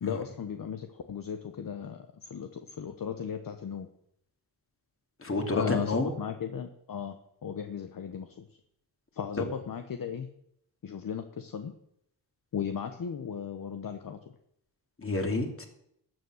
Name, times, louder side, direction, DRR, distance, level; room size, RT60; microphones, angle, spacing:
voice 1, 0.0-2.0 2.3-3.9 5.5-7.1 7.4-8.3 9.2-10.3 10.8-11.7 12.5-14.2, left 7 dB, 50° left, 7 dB, 1.1 m, -36 dB
voice 2, 5.2-6.2 9.4-9.5 15.0-15.7, left 2 dB, 30° left, 3 dB, 2.7 m, -30 dB
12.5 x 7.0 x 6.4 m, 0.74 s
cardioid pair, 60°, 41 cm